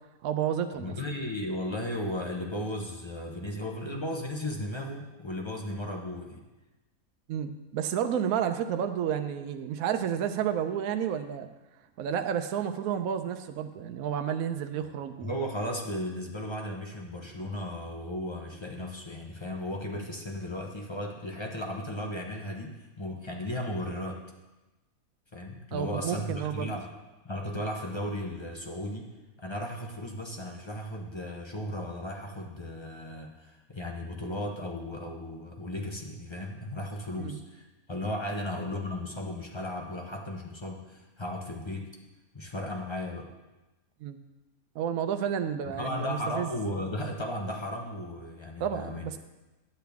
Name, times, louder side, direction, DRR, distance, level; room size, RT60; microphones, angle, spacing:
voice 1, 0.2-0.9 7.3-11.5 12.0-15.3 25.7-26.7 37.2-37.4 44.0-44.2 44.7-46.5 48.6-49.2, right 8 dB, 70° right, 8 dB, 1.0 m, -31 dB
voice 2, 0.7-6.4 15.2-24.2 25.3-26.9 27.2-29.1 29.4-41.9 42.3-43.3 45.8-49.2, left 1 dB, 30° left, 0 dB, 0.6 m, -35 dB
10.5 x 8.0 x 3.5 m, 1.1 s
omnidirectional pair, 1.6 m